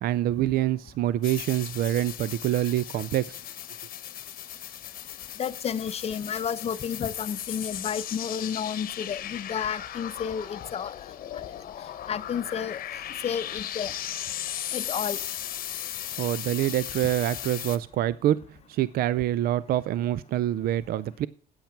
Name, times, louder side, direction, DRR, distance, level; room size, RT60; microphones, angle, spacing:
voice 1, 0.0-3.4 16.2-21.3, right 13 dB, 65° right, 0.5 m, -26 dB
sound 1, 1.2-17.8, left 11 dB, 60° left, 1.0 m, -37 dB
voice 2, 5.4-10.9 12.1-12.8 13.2-13.9 14.7-15.2, left 7 dB, 40° left, 0.7 m, -31 dB
9.1 x 8.8 x 5.8 m
cardioid pair, 110°, 17 cm